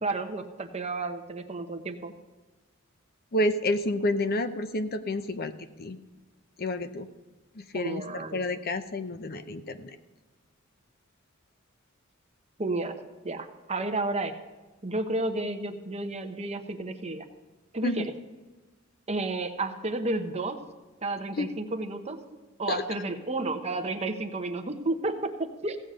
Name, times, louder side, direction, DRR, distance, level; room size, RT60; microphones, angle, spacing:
voice 1, 0.0-2.1 7.7-8.4 12.6-14.3 14.8-17.3 17.7-18.1 19.1-20.6 21.0-22.2 22.6-25.8, right 2 dB, 30° right, 6 dB, 1.0 m, -32 dB
voice 2, 3.3-5.5 5.8-6.0 6.6-7.1 7.5-8.0 8.3-10.0 17.8-18.1 21.4-21.5 22.7-22.8, left 1 dB, 50° left, 10 dB, 0.7 m, -29 dB
15.5 x 8.2 x 5.1 m, 1.2 s
head